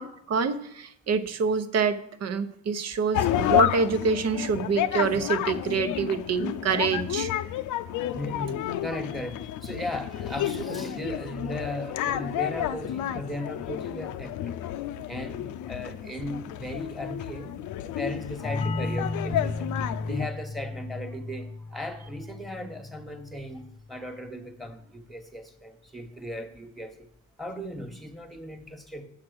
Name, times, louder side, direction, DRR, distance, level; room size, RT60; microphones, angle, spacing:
voice 1, 0.0-7.3, right 5 dB, 55° right, 11 dB, 0.9 m, -26 dB
sound 1, 3.1-20.3, left 12 dB, 85° left, 0.5 m, -30 dB
voice 2, 8.1-14.6 15.1-19.7 20.0-27.1 27.4-29.0, equal, ahead, 7 dB, 1.2 m, -37 dB
sound 2, 18.4-23.9, left 3 dB, 20° left, 0.6 m, -34 dB
7.5 x 7.4 x 6.3 m, 0.76 s
cardioid pair, 90°, 30 cm